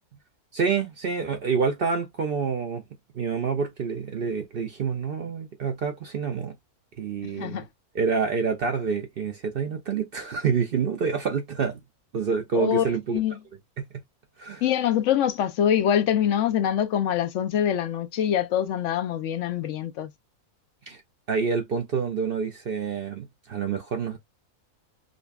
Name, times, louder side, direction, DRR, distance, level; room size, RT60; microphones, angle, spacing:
voice 1, 0.5-2.8 3.1-6.5 7.0-7.6 7.9-11.8 12.1-13.2 13.8-13.9 14.4-14.6 20.9-21.0 21.3-24.2, right 5 dB, 60° right, 0.6 m, -27 dB
voice 2, 12.5-12.9 13.1-13.4 14.6-20.1, left 10 dB, 70° left, 0.8 m, -24 dB
5.1 x 2.2 x 2.3 m
omnidirectional pair, 1.6 m